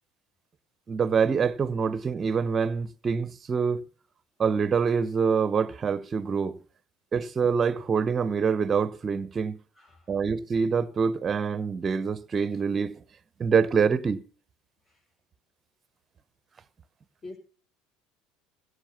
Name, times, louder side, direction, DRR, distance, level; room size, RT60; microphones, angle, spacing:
voice 1, 0.9-3.8 4.4-6.6 7.1-9.6 10.1-13.0 13.4-14.2, right 6 dB, 30° right, 0.9 m, -25 dB
voice 2, 9.7-10.1 14.8-15.0 17.2-17.4, left 2 dB, 35° left, 4.4 m, -45 dB
16.5 x 6.5 x 5.7 m
hypercardioid pair, 70°, 0 cm